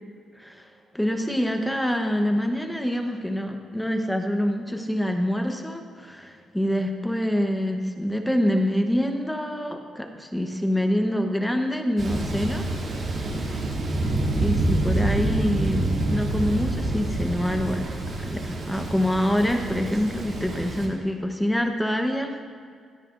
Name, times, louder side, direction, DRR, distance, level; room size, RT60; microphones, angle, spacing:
voice 1, 0.9-12.6 13.0-13.3 14.4-17.9 18.3-22.3, equal, 5° left, 4 dB, 0.9 m, -26 dB
Thunder, 12.0-20.9, right 2 dB, 50° right, 2.6 m, -27 dB
16.0 x 13.0 x 2.5 m, 2.1 s
cardioid pair, 125°, 0 cm